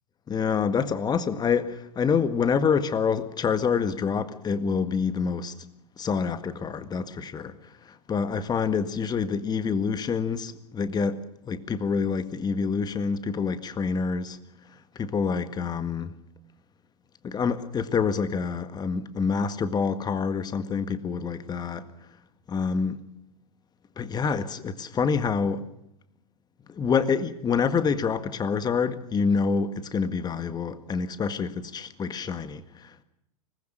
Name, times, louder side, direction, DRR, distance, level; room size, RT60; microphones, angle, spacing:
voice 1, 0.3-5.5 6.0-7.5 7.9-14.4 15.0-16.1 17.2-21.9 22.5-23.0 24.0-25.7 26.7-33.0, left 5 dB, 20° left, 1.8 m, -27 dB
25.5 x 20.0 x 6.7 m
hypercardioid pair, 100°, 20 cm